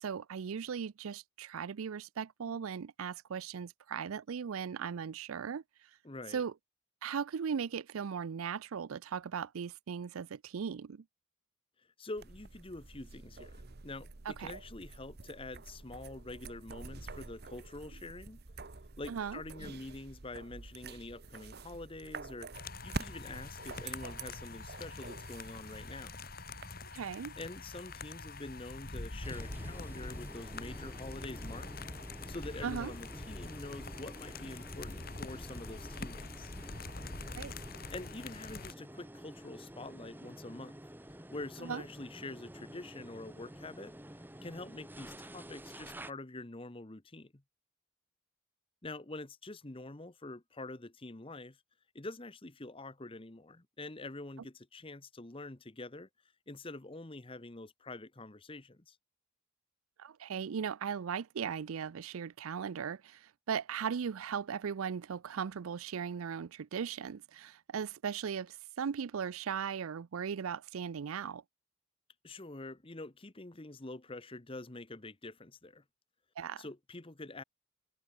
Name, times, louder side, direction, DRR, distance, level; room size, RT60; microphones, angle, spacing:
voice 1, 0.0-5.6 6.3-6.5 7.0-11.0 14.3-14.5 19.1-19.4 26.9-27.3 32.6-32.9 37.4-37.5 41.6-41.8 60.0-71.4 76.4-76.7, right 7 dB, 85° right, 0.5 m, -38 dB
voice 2, 6.0-6.4 12.0-13.5 13.8-18.4 19.0-22.5 22.8-26.2 27.4-31.7 32.3-36.5 37.9-40.8 41.3-43.9 44.4-47.4 48.8-51.6 51.9-56.1 56.5-59.0 72.2-75.8 76.6-77.4, left 2 dB, 25° left, 1.0 m, -46 dB
sound 1, 12.2-26.7, right 3 dB, 50° right, 1.0 m, -47 dB
sound 2, 22.5-38.7, left 3 dB, 45° left, 2.5 m, -45 dB
sound 3, 29.2-46.1, right 1 dB, 10° right, 1.7 m, -50 dB
head